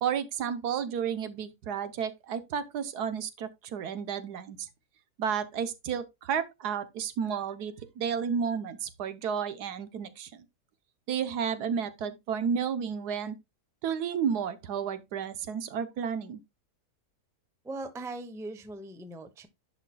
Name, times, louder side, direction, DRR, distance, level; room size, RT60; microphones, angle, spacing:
voice 1, 0.0-4.7 5.2-10.5 11.1-13.3 13.8-16.4, right 7 dB, 75° right, 1.3 m, -32 dB
voice 2, 17.6-19.5, right 2 dB, 5° right, 0.5 m, -40 dB
10.5 x 5.8 x 2.2 m
omnidirectional pair, 1.8 m